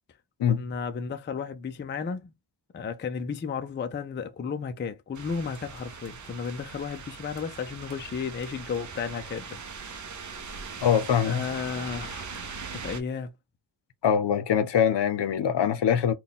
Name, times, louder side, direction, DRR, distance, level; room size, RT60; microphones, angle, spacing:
voice 1, 0.5-2.3 2.7-9.6 11.2-13.3, left 6 dB, 25° left, 0.3 m, -33 dB
sound 1, 5.1-13.0, right 5 dB, 40° right, 0.6 m, -40 dB
voice 2, 10.8-11.4 14.0-16.1, left 8 dB, 65° left, 0.7 m, -23 dB
4.0 x 2.3 x 3.5 m
wide cardioid pair, 175°, 46 cm